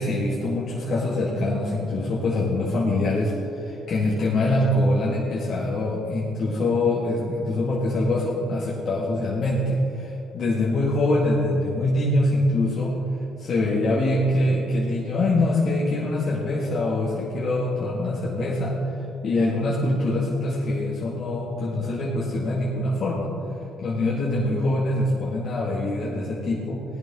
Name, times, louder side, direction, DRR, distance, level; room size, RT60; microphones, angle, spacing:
voice 1, 0.0-13.0 13.4-18.8 19.2-23.3 23.8-26.8, left 2 dB, 55° left, -6 dB, 2.0 m, -24 dB
17.0 x 11.0 x 3.7 m, 2.9 s
supercardioid pair, 70°, 0 cm